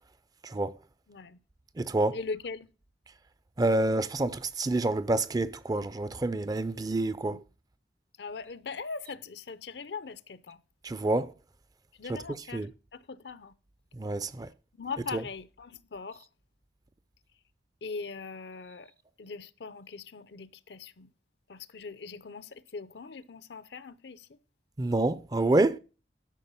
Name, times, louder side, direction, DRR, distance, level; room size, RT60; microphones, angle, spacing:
voice 1, 0.4-0.7 1.8-2.2 3.6-7.4 10.8-11.3 12.5-12.7 14.0-14.5 15.1-15.2 24.8-25.8, right 2 dB, 20° right, 0.4 m, -27 dB
voice 2, 1.1-1.4 2.1-2.7 7.3-7.4 8.2-10.6 12.0-13.5 14.8-16.3 17.8-18.9 19.2-21.1 21.5-24.3, left 4 dB, 75° left, 0.6 m, -41 dB
12.0 x 5.5 x 5.4 m
head